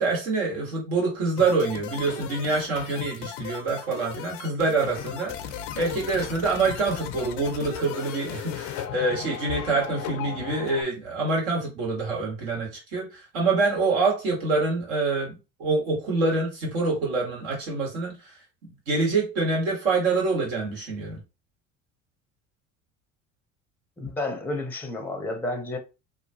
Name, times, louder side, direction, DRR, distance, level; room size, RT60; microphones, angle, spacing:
voice 1, 0.0-5.3 5.8-18.1 18.9-21.2, right 3 dB, 75° right, 1.6 m, -26 dB
sound 1, 1.4-10.8, left 10 dB, 60° left, 0.5 m, -36 dB
voice 2, 24.0-25.8, left 2 dB, 5° left, 0.6 m, -31 dB
2.8 x 2.3 x 2.7 m
hypercardioid pair, 65°, 41 cm